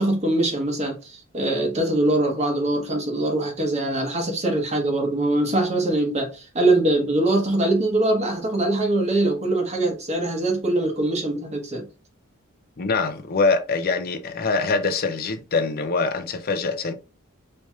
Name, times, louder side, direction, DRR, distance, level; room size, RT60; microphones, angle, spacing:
voice 1, 0.0-11.9, right 2 dB, 30° right, 1.0 m, -23 dB
voice 2, 12.8-16.9, left 4 dB, 45° left, 0.5 m, -24 dB
4.4 x 2.9 x 2.3 m
head